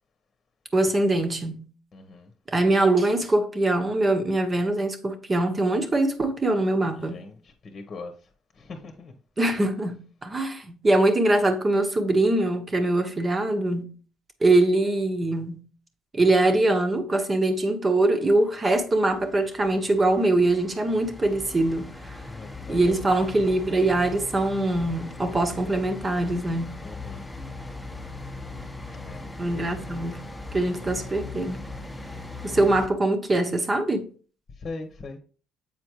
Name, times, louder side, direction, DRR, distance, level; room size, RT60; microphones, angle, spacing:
voice 1, 0.7-1.7 2.5-7.2 9.4-13.9 14.4-15.6 16.1-22.2 22.7-26.8 29.4-30.2 30.5-31.6 32.4-34.1, right 2 dB, 30° right, 1.2 m, -23 dB
voice 2, 1.9-2.3 7.0-8.1 8.6-9.1 22.3-23.0 26.8-27.3 28.9-29.3 34.6-35.2, left 3 dB, 45° left, 1.0 m, -40 dB
sound 1, 18.7-32.9, left 2 dB, 5° left, 1.0 m, -39 dB
7.4 x 4.4 x 3.1 m
supercardioid pair, 70°, 0 cm